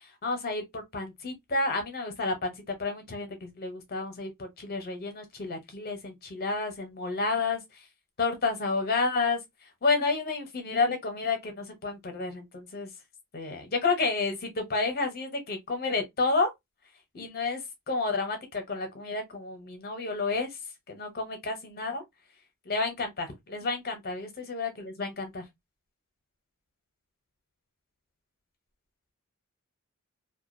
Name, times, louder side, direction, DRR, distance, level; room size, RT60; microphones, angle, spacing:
voice 1, 0.2-7.9 8.2-12.9 13.3-16.5 17.1-20.6 20.9-22.0 22.6-25.4, left 3 dB, 45° left, 0.8 m, -30 dB
2.4 x 2.2 x 2.5 m
head